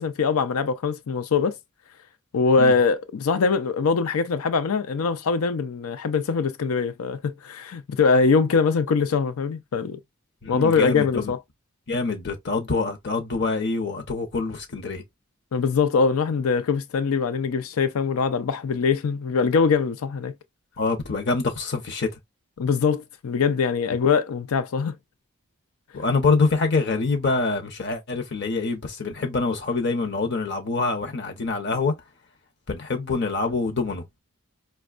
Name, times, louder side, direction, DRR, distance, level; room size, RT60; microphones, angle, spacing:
voice 1, 0.0-1.6 2.3-10.0 10.5-11.4 15.5-20.3 22.6-25.0, left 5 dB, 80° left, 0.5 m, -22 dB
voice 2, 10.4-11.3 11.9-15.0 20.8-22.1 25.9-31.9 32.7-34.0, left 3 dB, 55° left, 0.8 m, -25 dB
5.1 x 2.3 x 2.4 m
head